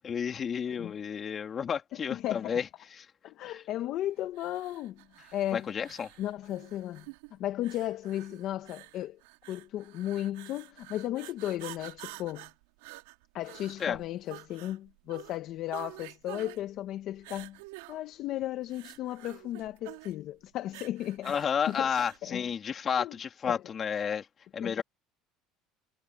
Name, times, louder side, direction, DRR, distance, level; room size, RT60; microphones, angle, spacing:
voice 1, 0.0-2.7 3.0-3.1 3.5-3.6 5.5-6.1 13.8-14.0 21.2-24.3 24.5-24.8, left 7 dB, 35° left, 3.1 m, -31 dB
voice 2, 2.1-2.6 3.2-5.0 5.3-5.7 6.2-7.0 7.3-9.2 9.5-12.5 13.3-17.6 17.9-21.3 21.7-22.4 23.0-23.2 23.4-23.6 24.6-24.8, left 13 dB, 60° left, 1.3 m, -35 dB
sound 1, 4.3-22.2, right 22 dB, 90° right, 3.5 m, -49 dB
supercardioid pair, 110°, 0 cm